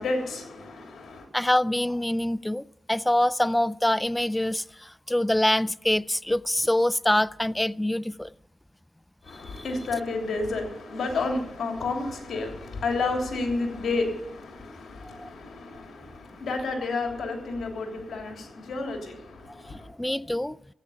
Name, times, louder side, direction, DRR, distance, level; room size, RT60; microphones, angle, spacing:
voice 1, 0.0-1.3 9.2-19.9, left 3 dB, 80° left, 3.1 m, -31 dB
voice 2, 1.3-8.3 9.4-9.6 15.1-15.3 19.7-20.6, left 1 dB, 10° left, 0.3 m, -25 dB
13.5 x 8.9 x 7.0 m
cardioid pair, 60°, 0 cm